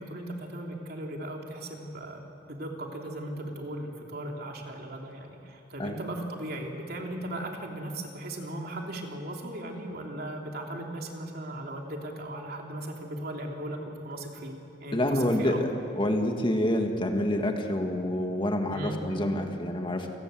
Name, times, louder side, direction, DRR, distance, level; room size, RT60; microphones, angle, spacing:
voice 1, 0.0-15.6 18.6-19.0, right 1 dB, 55° right, 1 dB, 3.1 m, -37 dB
voice 2, 14.9-20.1, left 1 dB, 25° left, 4 dB, 1.8 m, -27 dB
28.5 x 18.5 x 7.8 m, 2.7 s
head